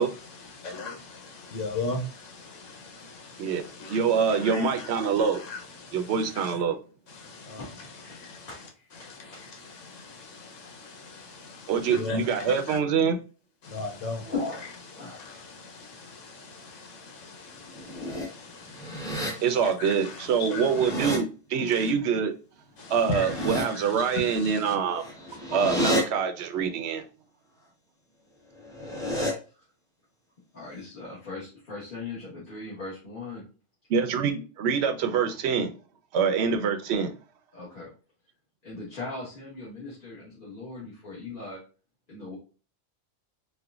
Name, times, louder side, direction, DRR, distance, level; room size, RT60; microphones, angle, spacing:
voice 1, 0.0-6.6 7.1-12.8 13.6-14.3 14.6-21.2 21.7-21.9 22.8-24.8 25.3-25.4, left 3 dB, 85° left, 1.1 m, -39 dB
voice 2, 3.9-5.4 5.9-6.8 11.7-13.2 19.4-22.3 22.9-25.0 25.5-27.0 33.9-35.7 36.1-37.1, right 6 dB, 65° right, 0.8 m, -25 dB
voice 3, 7.6-8.9 9.2-9.4 14.2-14.6 14.9-15.3 30.5-33.4 37.5-37.9 38.6-41.6 42.1-42.4, left 3 dB, 45° left, 1.4 m, -38 dB
sound 1, 17.7-18.3 18.7-19.3 20.4-21.2 23.0-23.6 24.9-26.0 28.5-29.3, left 1 dB, 5° left, 0.7 m, -31 dB
4.3 x 2.1 x 2.3 m
omnidirectional pair, 1.3 m